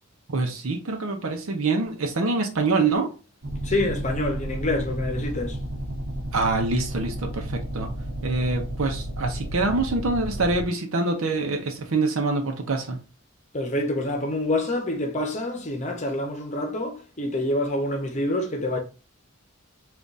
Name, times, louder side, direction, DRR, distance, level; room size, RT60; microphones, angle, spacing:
voice 1, 0.3-3.1 6.3-7.9 8.2-13.0, right 3 dB, 80° right, 0.7 m, -25 dB
sound 1, 3.4-10.7, right 1 dB, 55° right, 1.0 m, -32 dB
voice 2, 3.6-5.6 13.5-18.8, left 1 dB, 35° left, 0.8 m, -27 dB
3.6 x 2.5 x 3.9 m
head